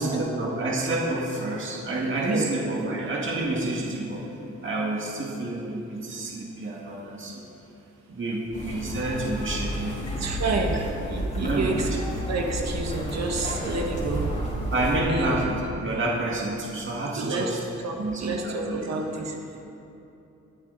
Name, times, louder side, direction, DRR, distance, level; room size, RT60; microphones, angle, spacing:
voice 1, 0.0-4.2 4.6-7.4 8.1-10.0 10.7-10.8 11.4-11.8 14.7-15.5 15.8-17.6 18.0-18.8, right 2 dB, 45° right, -3 dB, 2.0 m, -28 dB
sound 1, 8.5-15.0, equal, 25° left, 3.3 m, -31 dB
voice 2, 10.2-10.8 11.1-11.9 12.3-14.3 14.8-15.3 17.1-17.5 17.8-17.9 18.2-19.6, right 3 dB, 65° right, 1 dB, 1.3 m, -29 dB
23.0 x 7.8 x 4.1 m, 2.9 s
wide cardioid pair, 115°, 29 cm